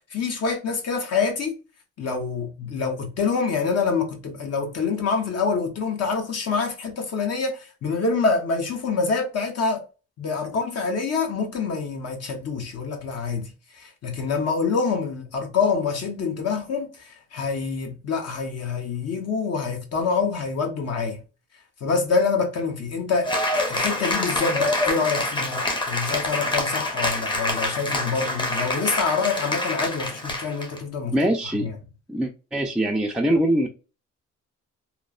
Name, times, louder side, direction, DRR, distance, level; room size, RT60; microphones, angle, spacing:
voice 1, 0.1-1.5 2.0-9.8 10.2-21.2 21.8-23.3 23.7-31.1 31.5-31.7, left 5 dB, 55° left, 1.0 m, -26 dB
Cheering / Applause, 23.2-30.8, left 1 dB, 15° left, 0.8 m, -26 dB
voice 2, 31.1-31.7 32.1-33.7, right 1 dB, 5° right, 0.4 m, -23 dB
3.1 x 2.0 x 2.4 m
cardioid pair, 90°, 30 cm